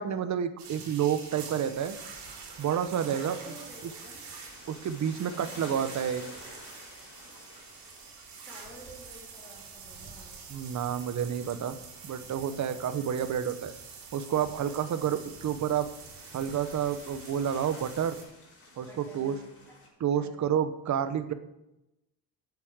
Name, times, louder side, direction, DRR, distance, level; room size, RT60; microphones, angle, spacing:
voice 1, 0.0-2.0 2.6-3.4 4.7-6.2 10.5-11.8 12.0-13.7 14.1-15.9 16.3-18.2 18.8-19.3 20.0-21.3, right 9 dB, 45° right, 11 dB, 1.0 m, -29 dB
sound 1, 0.6-18.2, right 5 dB, 75° right, 3.8 m, -47 dB
sound 2, 1.4-19.9, left 2 dB, 35° left, 4.1 m, -53 dB
voice 2, 3.1-4.3 8.4-10.3 14.6-15.0 18.8-19.8 20.1-20.5, right 1 dB, 5° left, -3 dB, 3.2 m, -51 dB
8.5 x 8.4 x 7.9 m, 0.90 s
cardioid pair, 150°, 40 cm